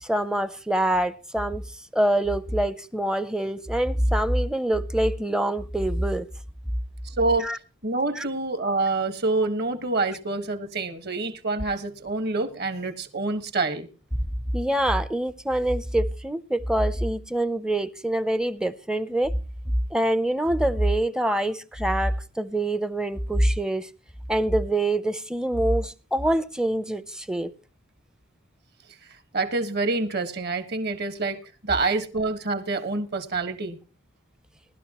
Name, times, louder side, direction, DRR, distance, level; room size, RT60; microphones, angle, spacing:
voice 1, 0.0-1.6 1.9-6.3 7.4-7.6 8.2-8.3 14.5-19.3 19.9-23.9 24.3-27.5, right 1 dB, 5° right, 0.5 m, -25 dB
voice 2, 7.0-13.9 29.3-33.8, right 3 dB, 50° right, 1.5 m, -27 dB
19.0 x 12.5 x 3.0 m
head